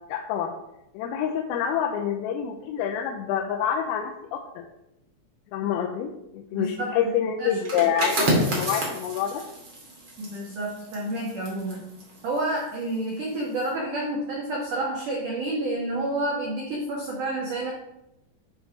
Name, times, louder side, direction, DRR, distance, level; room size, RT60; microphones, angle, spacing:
voice 1, 0.1-0.5 0.9-4.6 5.5-9.4, left 8 dB, 85° left, 2 dB, 3.3 m, -27 dB
voice 2, 6.5-6.9 7.4-7.6 10.2-11.9 12.2-17.7, right 1 dB, 85° right, -2 dB, 1.8 m, -29 dB
sound 1, 7.5-13.0 13.4-13.7, right 1 dB, 50° right, 1.3 m, -29 dB
9.8 x 4.5 x 5.3 m, 0.86 s
omnidirectional pair, 5.9 m